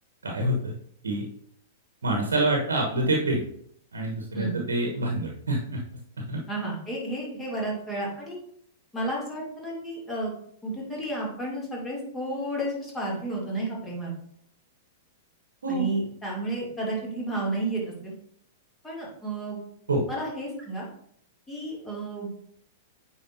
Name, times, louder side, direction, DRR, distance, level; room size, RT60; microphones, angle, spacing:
voice 1, 0.2-0.7 1.0-1.2 2.0-3.4 3.9-5.8 6.3-6.4 15.6-15.9 19.9-20.0, right 1 dB, 75° right, 0 dB, 1.1 m, -26 dB
voice 2, 6.5-8.4 8.9-10.3 10.6-14.1 15.7-18.1 18.8-19.6 20.1-20.9 21.5-22.3, right 1 dB, 10° left, -4 dB, 2.6 m, -32 dB
8.7 x 4.7 x 2.7 m, 0.68 s
figure-of-eight pair, 100°, 0 cm